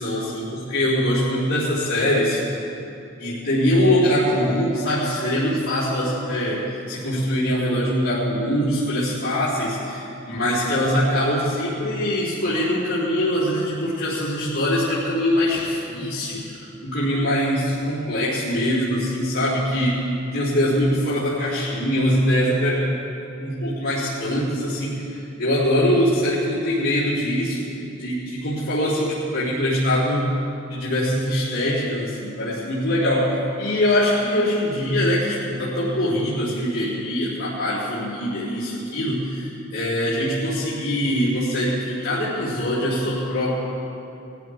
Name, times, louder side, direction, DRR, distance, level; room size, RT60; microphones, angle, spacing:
voice 1, 0.0-2.4 3.2-20.0 20.3-22.9 23.4-27.7 28.0-30.3 30.7-43.6, equal, 80° left, -14 dB, 3.9 m, -23 dB
20.0 x 14.5 x 3.6 m, 2.8 s
head